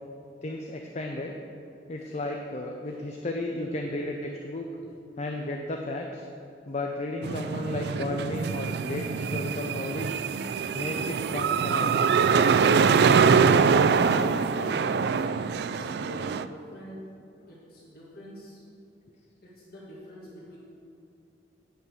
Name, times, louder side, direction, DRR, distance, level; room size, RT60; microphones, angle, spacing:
voice 1, 0.4-1.3 1.9-4.7 5.2-6.3 6.7-10.1 10.7-11.9, left 2 dB, 40° left, 2 dB, 0.6 m, -33 dB
sound 1, 7.2-16.5, right 5 dB, 65° right, 0.3 m, -24 dB
voice 2, 13.8-15.0 15.5-17.0 17.4-18.6 19.4-20.6, equal, 60° left, -5 dB, 1.7 m, -44 dB
9.1 x 5.7 x 6.6 m, 2.5 s
head